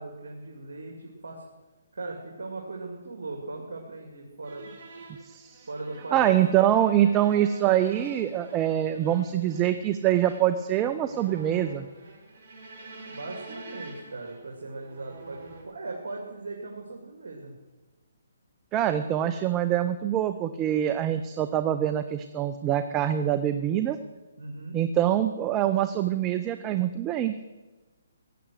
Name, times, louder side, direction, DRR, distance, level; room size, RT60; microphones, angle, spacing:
voice 1, 0.0-1.4 1.9-4.7 5.7-6.3 13.1-17.5 24.4-24.8, right 3 dB, 70° right, 1 dB, 2.7 m, -39 dB
sound 1, 4.4-15.6, right 2 dB, 45° right, 4.8 m, -47 dB
voice 2, 5.2-5.7 6.1-11.9 18.7-24.0 24.7-27.3, right 11 dB, 20° right, 10 dB, 0.6 m, -24 dB
16.0 x 9.4 x 7.8 m, 1.2 s
hypercardioid pair, 150°, 0 cm